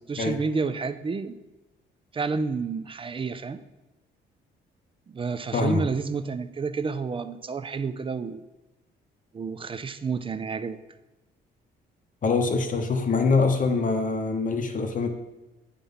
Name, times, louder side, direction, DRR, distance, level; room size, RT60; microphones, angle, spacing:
voice 1, 0.1-1.4 2.1-3.6 5.1-8.4 9.3-10.8, right 4 dB, 25° right, 12 dB, 0.4 m, -30 dB
voice 2, 12.2-15.1, left 4 dB, 40° left, 5 dB, 0.8 m, -24 dB
8.5 x 3.8 x 5.4 m, 1.0 s
cardioid pair, 90°, 20 cm